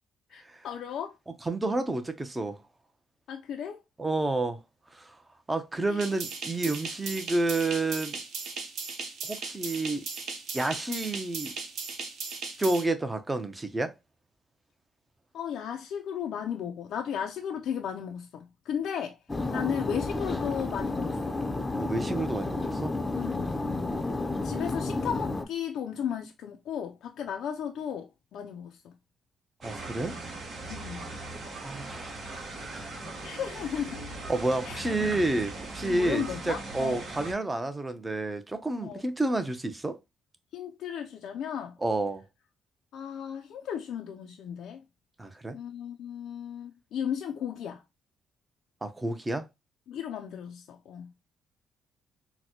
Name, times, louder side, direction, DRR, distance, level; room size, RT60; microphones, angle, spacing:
voice 1, 0.3-1.1 3.3-3.8 5.9-6.2 15.3-19.2 19.5-21.4 23.2-23.9 24.4-28.9 30.7-31.1 33.2-34.0 34.6-35.2 35.8-37.0 38.8-39.0 40.5-41.8 42.9-44.8 45.5-47.8 49.9-51.1, left 8 dB, 75° left, 0.4 m, -35 dB
voice 2, 1.5-2.6 4.0-4.6 4.9-5.0 5.5-8.2 9.3-10.0 10.5-11.5 12.6-13.9 19.5-19.6 21.8-22.9 29.6-30.1 31.6-33.0 34.3-40.0 41.8-42.2 45.2-45.5 48.8-49.5, right 2 dB, 15° right, 0.7 m, -30 dB
sound 1, 6.0-12.8, right 4 dB, 75° right, 0.9 m, -37 dB
sound 2, 19.3-25.4, left 2 dB, 20° left, 0.6 m, -31 dB
sound 3, 29.6-37.3, right 2 dB, 55° right, 1.2 m, -39 dB
4.0 x 2.1 x 2.9 m
cardioid pair, 90°, 0 cm